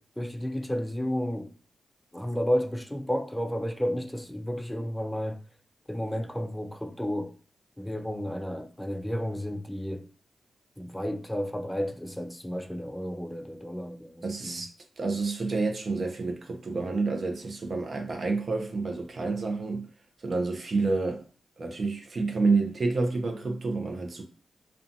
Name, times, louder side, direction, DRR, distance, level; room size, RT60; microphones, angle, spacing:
voice 1, 0.0-1.5 2.1-5.4 5.9-7.3 7.8-10.1 10.8-14.6, equal, 10° left, 0.4 m, -32 dB
voice 2, 14.2-14.7 15.0-19.9 20.2-21.2 21.6-24.2, right 3 dB, 55° right, 0.6 m, -29 dB
2.5 x 2.3 x 2.6 m
cardioid pair, 65°, 0 cm